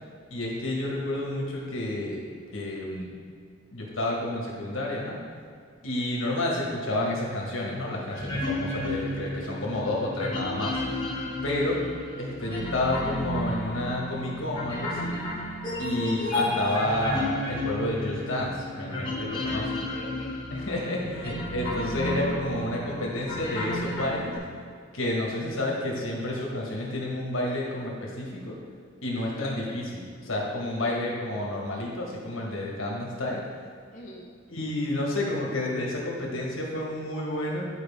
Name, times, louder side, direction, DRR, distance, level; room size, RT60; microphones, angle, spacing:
voice 1, 0.3-2.2 2.5-3.1 3.7-5.2 5.8-10.8 11.4-11.8 12.2-15.2 15.8-19.6 20.5-24.3 24.9-28.6 29.0-33.4 34.5-37.7, left 1 dB, 80° left, -2 dB, 1.6 m, -30 dB
sound 1, 8.1-24.4, left 1 dB, 25° left, 1.5 m, -32 dB
voice 2, 19.5-20.4 29.1-29.9 30.8-31.1 33.9-34.3, left 2 dB, 40° left, -5 dB, 0.9 m, -42 dB
10.5 x 4.8 x 3.6 m, 2.1 s
head